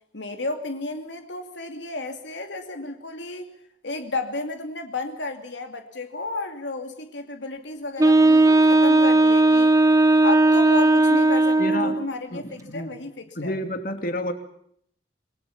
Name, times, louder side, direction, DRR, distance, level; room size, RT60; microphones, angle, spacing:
voice 1, 0.1-3.5 3.8-9.8 10.2-13.6, left 2 dB, 75° left, 6 dB, 2.5 m, -32 dB
Wind instrument woodwind instrument, 8.0-12.1, right 2 dB, 20° right, 1.1 m, -17 dB
voice 2, 11.6-12.0 12.3-12.9 13.4-14.3, left 1 dB, 50° left, 7 dB, 2.8 m, -29 dB
28.0 x 22.0 x 7.2 m, 0.67 s
head